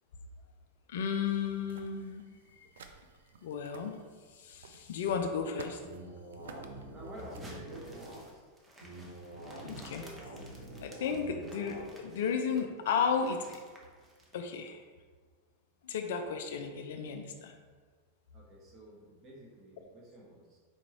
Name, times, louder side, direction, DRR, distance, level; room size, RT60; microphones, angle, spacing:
voice 1, 0.9-2.2 2.6-2.7 3.4-3.9 4.3-5.8 9.6-10.1 10.8-13.6 14.3-14.8 15.8-17.6, left 6 dB, 55° left, 5 dB, 0.4 m, -34 dB
sound 1, 1.2-7.4, right 5 dB, 60° right, 0.3 m, -54 dB
sound 2, 5.8-8.2 8.8-11.8, right 1 dB, 80° right, 0.9 m, -46 dB
voice 2, 6.9-8.4 18.3-20.6, right 1 dB, 30° right, -3 dB, 1.3 m, -50 dB
sound 3, 7.1-14.4, equal, 10° right, 0.8 m, -55 dB
4.4 x 3.7 x 3.1 m, 1.5 s
figure-of-eight pair, 90°, 0 cm